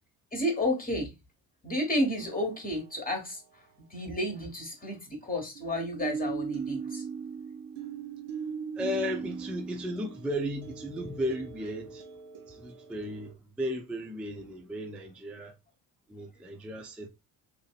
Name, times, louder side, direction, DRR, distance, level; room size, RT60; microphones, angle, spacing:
voice 1, 0.3-1.1 1.6-3.4 3.9-7.0, left 1 dB, 15° left, 1.3 m, -31 dB
sound 1, 2.2-3.0 5.6-13.3, right 6 dB, 55° right, 0.8 m, -39 dB
voice 2, 8.8-12.0 12.5-15.6 16.1-17.1, equal, 5° right, 0.4 m, -35 dB
2.9 x 2.6 x 2.4 m
hypercardioid pair, 60°, 50 cm